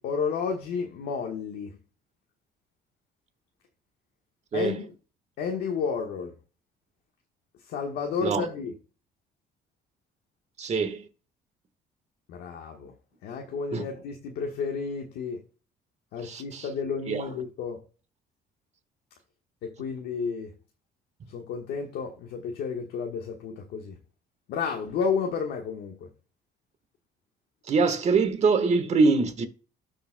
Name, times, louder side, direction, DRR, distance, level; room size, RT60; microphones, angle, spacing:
voice 1, 0.0-1.7 4.5-4.9 5.4-6.3 7.7-8.7 12.3-12.9 13.2-15.4 16.1-17.8 19.6-20.5 21.3-23.9 24.5-26.1, left 5 dB, 75° left, 1.4 m, -31 dB
voice 2, 10.6-11.0 13.7-13.8 16.2-16.7 17.1-17.3 27.7-29.5, right 4 dB, 40° right, 1.4 m, -24 dB
13.0 x 5.3 x 2.2 m
cardioid pair, 110°, 17 cm